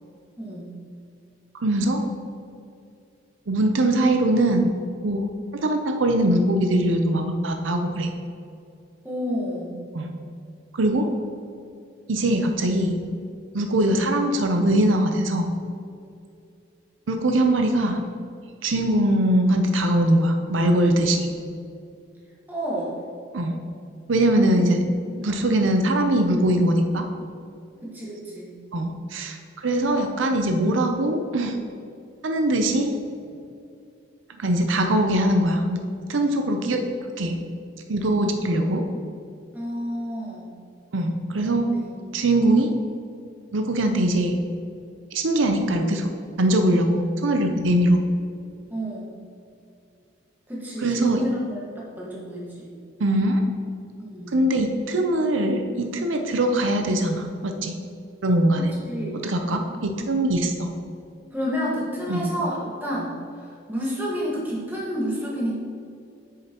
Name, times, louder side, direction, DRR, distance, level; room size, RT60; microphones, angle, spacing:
voice 1, 0.4-0.7 9.0-9.8 22.5-23.0 24.5-24.6 25.1-25.8 27.8-28.5 39.5-40.5 41.6-42.2 48.7-49.1 50.5-52.7 54.0-54.4 58.6-59.2 61.3-65.6, equal, 10° right, -6 dB, 1.6 m, -30 dB
voice 2, 1.6-2.0 3.5-4.7 5.0-5.2 5.6-8.1 9.9-10.1 10.7-11.1 12.1-13.0 13.5-15.5 17.1-18.0 18.6-21.3 23.3-23.6 24.1-24.8 25.2-27.1 28.7-31.6 32.2-33.0 34.4-35.8 36.1-36.8 37.2-37.4 37.9-38.8 40.9-41.7 42.1-42.7 43.5-44.4 45.1-46.1 46.4-48.0 50.8-51.2 53.0-53.4 54.3-57.7 58.2-58.7 59.2-60.7 62.1-62.3, right 1 dB, 90° right, 5 dB, 0.7 m, -21 dB
8.6 x 6.5 x 3.0 m, 2.5 s
head